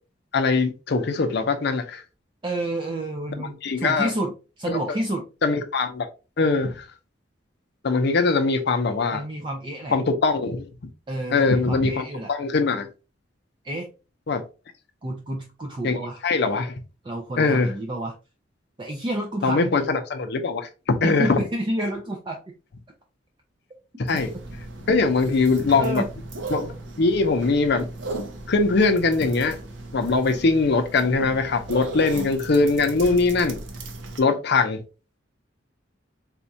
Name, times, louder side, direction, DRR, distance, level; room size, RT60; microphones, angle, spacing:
voice 1, 0.3-2.0 3.4-4.1 4.7-4.8 5.4-6.1 6.4-6.9 7.8-9.2 9.9-10.7 11.3-12.9 14.3-14.4 15.8-16.7 17.4-17.7 19.4-21.4 24.0-24.3 24.9-26.0 26.5-27.9 28.5-29.6 29.9-33.6 34.2-34.8, left 3 dB, 60° left, 0.6 m, -22 dB
voice 2, 2.4-5.3 9.1-10.0 11.1-12.3 13.6-13.9 15.0-16.2 17.0-18.2 18.8-19.8 21.0-22.5 25.8-26.1, right 1 dB, 25° right, 0.4 m, -30 dB
sound 1, 24.1-34.2, right 2 dB, 75° right, 0.7 m, -37 dB
4.2 x 2.3 x 2.6 m
head